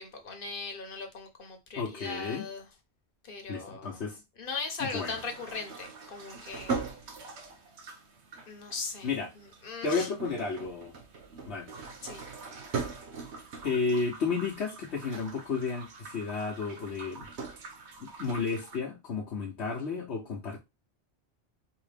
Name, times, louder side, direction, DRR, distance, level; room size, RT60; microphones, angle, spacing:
voice 1, 0.0-2.7 3.2-4.1 4.4-6.8 8.5-10.1 12.0-12.2, left 4 dB, 55° left, 1.2 m, -39 dB
voice 2, 1.8-2.4 3.5-4.2 4.8-5.1 9.0-9.3 9.8-10.9 11.5-11.7 13.6-17.3 18.0-20.6, left 4 dB, 80° left, 1.2 m, -32 dB
sound 1, 4.9-18.8, right 4 dB, 80° right, 1.1 m, -41 dB
4.9 x 3.1 x 3.4 m
omnidirectional pair, 1.1 m